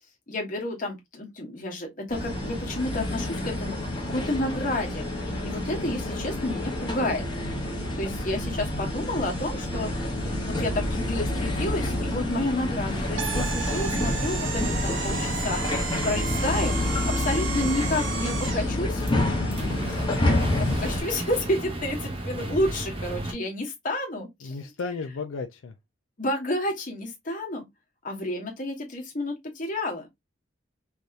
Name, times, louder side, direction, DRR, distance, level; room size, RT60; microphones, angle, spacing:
voice 1, 0.3-7.3 7.9-10.1 10.4-16.8 17.1-19.0 19.4-20.1 20.6-24.6 26.2-27.7 28.0-30.1, left 1 dB, 45° left, 1.1 m, -30 dB
sound 1, 2.1-21.0, left 1 dB, 25° left, 0.8 m, -28 dB
sound 2, 12.7-23.3, right 1 dB, 30° right, 0.7 m, -35 dB
sound 3, 13.2-18.7, right 7 dB, 80° right, 0.6 m, -34 dB
voice 2, 19.3-19.9 24.4-25.7, left 4 dB, 90° left, 0.5 m, -35 dB
3.4 x 2.8 x 2.4 m
head